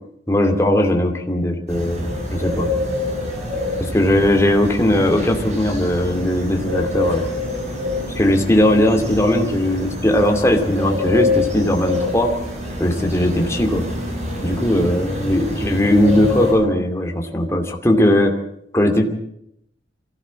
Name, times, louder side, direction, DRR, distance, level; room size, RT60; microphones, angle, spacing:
voice 1, 0.3-2.7 3.9-7.3 8.2-12.3 12.8-13.8 14.4-18.3 18.7-19.1, left 1 dB, 15° left, 3 dB, 2.6 m, -18 dB
sound 1, 1.7-16.5, left 2 dB, 40° right, 7.5 m, -26 dB
24.0 x 16.0 x 7.6 m, 0.76 s
head